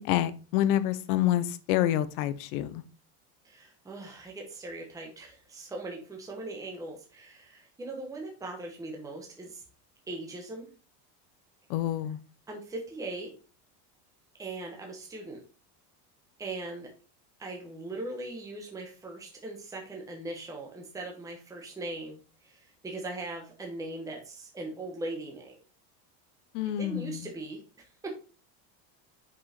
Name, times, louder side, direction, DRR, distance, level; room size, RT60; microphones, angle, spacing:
voice 1, 0.0-2.8 11.7-12.2 26.5-27.3, left 12 dB, 75° left, 13 dB, 0.8 m, -27 dB
voice 2, 3.4-9.6 10.1-10.7 12.5-13.3 14.3-15.4 16.4-16.9 17.4-25.5 26.8-28.1, right 2 dB, 5° right, 1 dB, 1.0 m, -40 dB
5.6 x 5.3 x 4.3 m, 0.36 s
cardioid pair, 160°, 45 cm